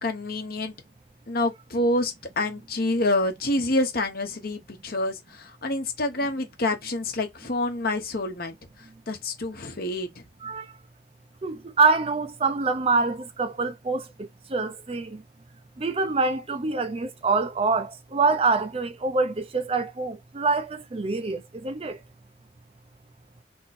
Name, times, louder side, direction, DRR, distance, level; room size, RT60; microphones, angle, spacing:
voice 1, 0.0-0.7 1.3-8.5 9.1-10.1, left 2 dB, 55° left, 1.1 m, -27 dB
voice 2, 11.4-15.2 15.8-22.0, right 4 dB, 30° right, 0.5 m, -25 dB
3.6 x 3.0 x 4.1 m
head